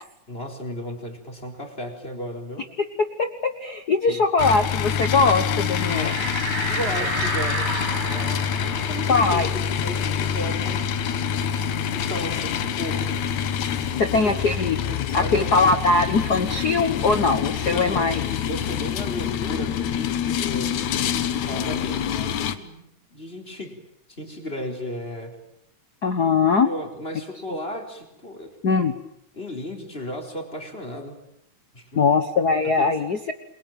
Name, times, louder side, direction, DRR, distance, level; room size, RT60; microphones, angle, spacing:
voice 1, 0.3-2.7 4.1-4.2 6.7-10.9 11.9-13.2 13.9-14.4 14.8-15.5 17.6-18.1 18.4-23.8 24.1-25.4 26.6-28.6 29.3-31.2 31.7-32.1 32.6-33.0, equal, 20° left, 3 dB, 4.5 m, -35 dB
voice 2, 3.2-6.2 9.1-9.5 14.0-14.8 15.1-18.2 26.0-26.7 28.6-28.9 31.9-33.3, left 4 dB, 45° left, 8 dB, 1.3 m, -21 dB
sound 1, 4.4-22.6, left 8 dB, 75° left, 2.6 m, -26 dB
sound 2, 5.7-10.9 11.2-11.3 11.7-13.3, right 3 dB, 75° right, 8.8 m, -32 dB
28.5 x 23.0 x 9.1 m, 0.81 s
omnidirectional pair, 3.4 m